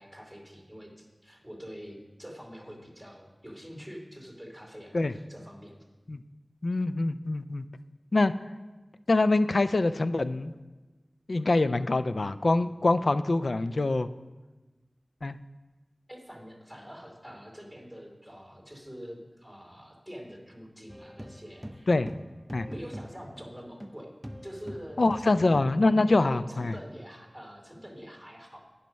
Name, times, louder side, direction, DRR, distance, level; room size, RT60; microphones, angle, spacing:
voice 1, 0.0-5.8 16.1-21.9 22.7-24.1 24.4-25.4 26.2-28.6, equal, 10° left, 0 dB, 2.5 m, -45 dB
voice 2, 6.6-7.7 8.1-8.3 9.1-10.5 11.3-14.1 15.2-15.4 21.9-22.1 22.5-22.7 25.0-26.7, left 2 dB, 75° left, 13 dB, 0.3 m, -24 dB
sound 1, 20.9-24.0 24.2-25.8, equal, 10° right, 0.5 m, -43 dB
9.3 x 5.8 x 5.3 m, 1.2 s
wide cardioid pair, 50°, 0 cm